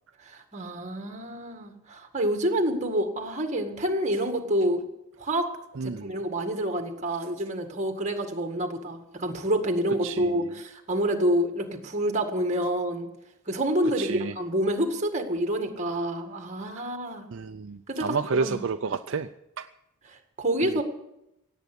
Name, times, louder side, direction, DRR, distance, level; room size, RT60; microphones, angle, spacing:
voice 1, 0.2-4.8 5.2-5.5 5.8-13.1 13.5-17.3 17.9-18.6 20.1-20.8, right 1 dB, 30° right, 4 dB, 1.9 m, -28 dB
voice 2, 5.8-6.1 10.0-10.3 14.0-14.4 17.3-19.3 19.6-19.7, right 5 dB, 60° right, 7 dB, 0.5 m, -30 dB
17.5 x 8.1 x 8.3 m, 0.85 s
head